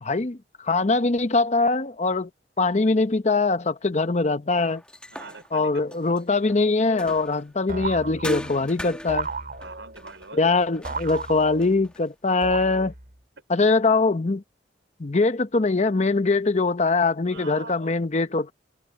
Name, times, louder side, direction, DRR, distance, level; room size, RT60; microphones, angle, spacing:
voice 1, 0.0-2.3 2.6-4.8 5.5-9.3 10.3-12.9 13.5-14.4 15.0-18.5, left 3 dB, 40° left, 0.7 m, -22 dB
sound 1, 4.6-7.6 8.2-12.1, left 1 dB, 5° left, 1.7 m, -40 dB
voice 2, 5.1-5.7 9.6-10.6 17.3-18.0, right 3 dB, 90° right, 5.3 m, -42 dB
sound 2, 7.7-8.6 9.1-10.0 10.9-11.9 12.4-13.1, right 3 dB, 55° right, 3.6 m, -34 dB
head